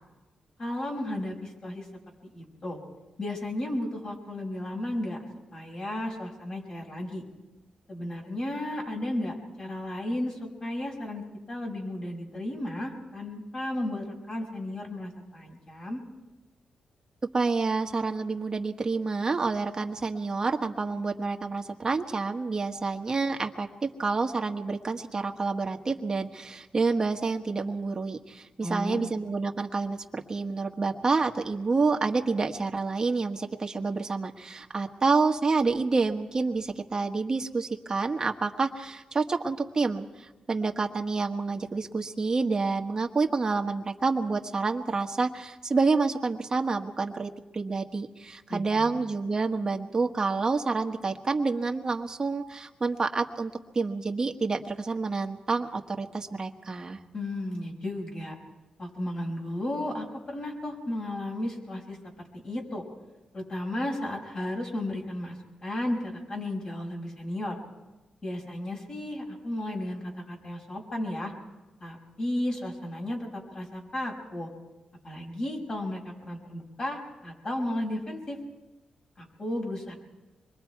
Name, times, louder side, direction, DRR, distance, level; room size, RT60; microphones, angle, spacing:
voice 1, 0.6-1.9 2.3-2.8 3.2-5.2 5.5-7.2 7.9-16.0 28.6-29.1 48.5-49.0 57.1-58.4 58.8-62.0 62.4-62.8 63.3-65.4 65.6-67.6 68.2-71.3 71.8-74.5 75.0-78.4 79.2-79.9, left 1 dB, 40° left, 0 dB, 5.6 m, -34 dB
voice 2, 17.3-57.0, right 4 dB, 30° right, 4 dB, 1.5 m, -28 dB
25.5 x 22.5 x 4.7 m, 1.1 s
cardioid pair, 110°, 2 cm